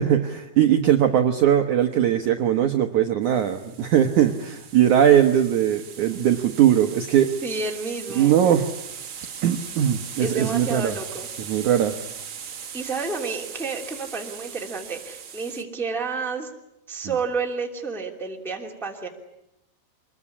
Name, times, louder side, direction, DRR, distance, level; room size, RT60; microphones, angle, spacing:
voice 1, 0.0-7.3 8.2-8.7 9.4-10.9 11.5-11.9, right 10 dB, 65° right, 5 dB, 2.0 m, -20 dB
sound 1, 3.2-15.6, right 7 dB, 50° right, 1.8 m, -39 dB
voice 2, 7.4-8.5 10.2-11.3 12.7-16.5 16.9-19.1, right 4 dB, ahead, 0 dB, 2.0 m, -30 dB
25.5 x 21.5 x 9.9 m, 0.85 s
omnidirectional pair, 4.7 m